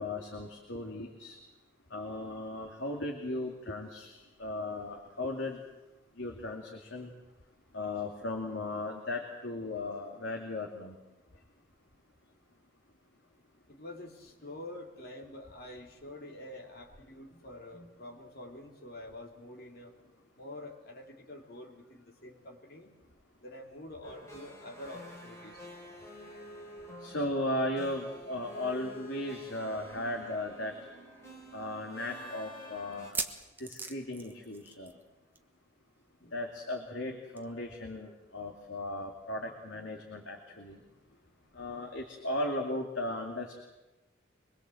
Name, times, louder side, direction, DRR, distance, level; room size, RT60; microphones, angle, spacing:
voice 1, 0.0-1.4 1.9-5.6 6.2-7.1 7.7-11.0 17.7-17.9 27.0-30.8 31.5-33.1 33.6-34.9 36.3-40.8 41.5-43.6, left 1 dB, 70° left, 1 dB, 2.6 m, -36 dB
voice 2, 13.7-19.9 20.4-22.9 23.4-25.7, left 1 dB, 50° left, 1 dB, 3.5 m, -47 dB
sound 1, 24.0-33.1, equal, 15° left, 4.1 m, -49 dB
sound 2, 30.3-30.4 30.7-30.8 31.4-31.5 32.9-35.1 35.3-35.6 35.8-35.9 37.4-37.5, right 3 dB, 10° right, 1.3 m, -39 dB
24.5 x 21.0 x 7.9 m, 1.1 s
head